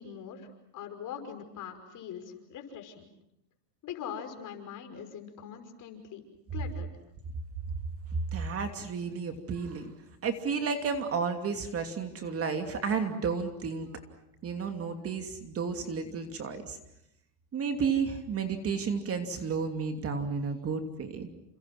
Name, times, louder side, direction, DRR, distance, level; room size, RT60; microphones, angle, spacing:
voice 1, 0.0-3.1 3.8-6.2 6.5-6.9, left 8 dB, 40° left, 6 dB, 5.6 m, -42 dB
voice 2, 8.3-9.9 10.2-14.0 14.4-16.8 17.5-21.3, right 5 dB, 30° right, 6 dB, 2.8 m, -32 dB
29.5 x 27.5 x 6.1 m, 0.79 s
supercardioid pair, 125°, 47 cm